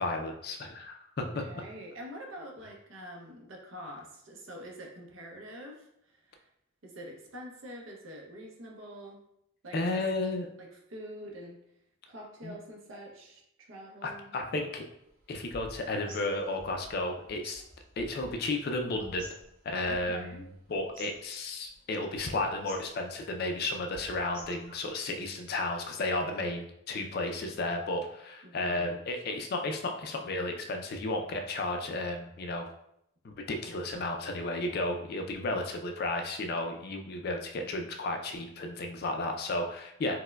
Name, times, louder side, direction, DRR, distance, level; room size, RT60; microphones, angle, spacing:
voice 1, 0.0-1.4 9.7-10.5 12.4-12.5 14.0-14.8 15.3-17.6 18.0-19.3 19.6-32.7 33.2-40.2, left 2 dB, 50° left, 4 dB, 0.3 m, -33 dB
voice 2, 1.2-6.5 6.8-9.2 9.6-9.8 10.2-10.3 10.6-11.6 12.1-14.3 19.8-20.4 28.4-29.0 40.1-40.2, equal, 70° right, 1 dB, 0.6 m, -46 dB
sound 1, 15.0-25.1, right 1 dB, 40° right, 0.9 m, -53 dB
4.3 x 2.1 x 2.2 m, 0.77 s
head